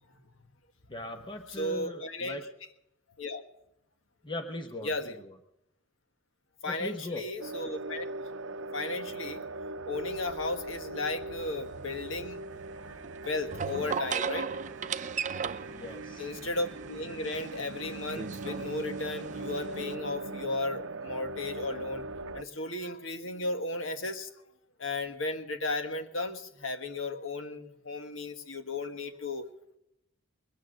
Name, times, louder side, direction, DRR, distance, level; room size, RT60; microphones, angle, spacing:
voice 1, 0.9-2.4 4.2-5.3 6.7-7.2 15.7-16.3, left 1 dB, 25° left, 5 dB, 1.0 m, -39 dB
voice 2, 1.5-2.4 3.2-3.4 4.8-5.2 6.6-8.0 8.7-9.4 9.8-13.0 13.2-14.5 16.2-22.0 22.3-24.3 24.8-29.4, left 2 dB, 75° left, 7 dB, 1.5 m, -35 dB
sound 1, 7.4-22.4, right 2 dB, 80° right, 0.6 m, -41 dB
sound 2, 11.4-19.9, right 6 dB, 40° right, 0.6 m, -38 dB
21.5 x 9.2 x 6.5 m, 0.81 s
head